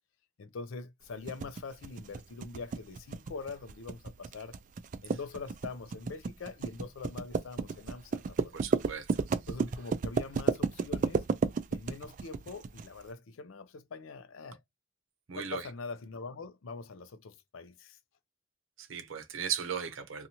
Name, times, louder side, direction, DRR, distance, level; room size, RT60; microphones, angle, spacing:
voice 1, 0.4-4.6 5.0-8.6 9.5-11.3 11.7-14.6 15.3-18.0, left 4 dB, 85° left, 0.5 m, -43 dB
sound 1, 1.3-12.9, right 4 dB, 40° right, 0.3 m, -32 dB
voice 2, 8.5-9.1 15.3-15.6 18.8-20.3, right 8 dB, 80° right, 0.6 m, -37 dB
2.7 x 2.3 x 2.8 m
head